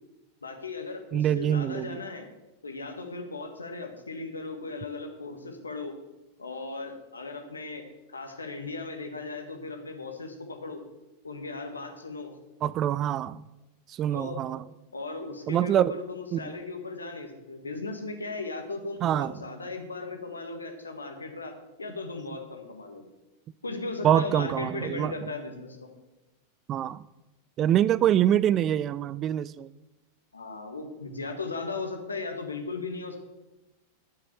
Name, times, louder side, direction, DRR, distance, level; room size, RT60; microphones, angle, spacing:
voice 1, 0.4-2.3 2.6-6.0 6.4-10.8 11.2-12.3 14.1-14.4 14.9-23.0 23.6-25.9 30.3-33.2, left 3 dB, 75° left, 1.7 m, -37 dB
voice 2, 1.1-2.0 12.6-13.5 13.9-14.6 15.5-15.9 16.3-16.5 19.0-19.3 24.0-25.1 26.7-27.0 27.6-29.7, right 11 dB, 30° right, 0.4 m, -25 dB
10.0 x 7.6 x 6.9 m
figure-of-eight pair, 90°, 0 cm